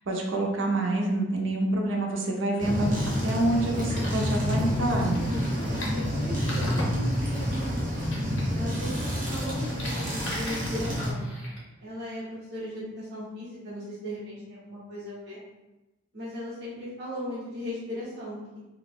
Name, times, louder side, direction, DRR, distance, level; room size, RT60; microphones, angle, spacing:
voice 1, 0.0-3.0 3.2-5.3, right 1 dB, 85° right, 0 dB, 0.6 m, -27 dB
sound 1, 2.6-11.1, equal, 45° right, 0.8 m, -28 dB
sound 2, 3.3-11.6, left 1 dB, 70° left, 1.0 m, -42 dB
voice 2, 4.9-8.1 8.5-11.2 11.8-15.4 16.1-18.6, left 1 dB, 65° right, -10 dB, 1.1 m, -38 dB
2.8 x 2.5 x 3.4 m, 1.0 s
head